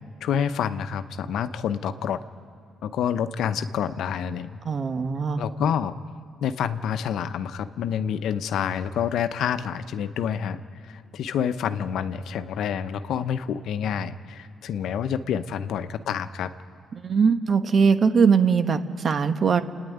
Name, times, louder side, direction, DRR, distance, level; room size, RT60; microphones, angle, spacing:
voice 1, 0.2-2.2 2.8-4.6 5.4-6.0 6.4-16.5, left 8 dB, 75° left, 11 dB, 0.8 m, -28 dB
voice 2, 4.6-5.4 16.9-19.6, right 5 dB, 50° right, 9 dB, 1.1 m, -21 dB
28.5 x 9.7 x 9.4 m, 2.7 s
cardioid pair, 90°, 0 cm